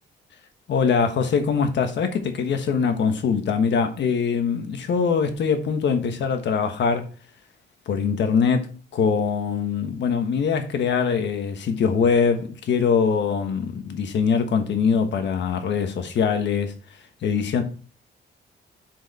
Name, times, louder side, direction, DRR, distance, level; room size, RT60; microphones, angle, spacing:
voice 1, 0.7-7.1 7.9-16.7 17.2-17.6, left 6 dB, 70° left, 1.3 m, -23 dB
7.9 x 4.8 x 4.1 m
cardioid pair, 140°, 19 cm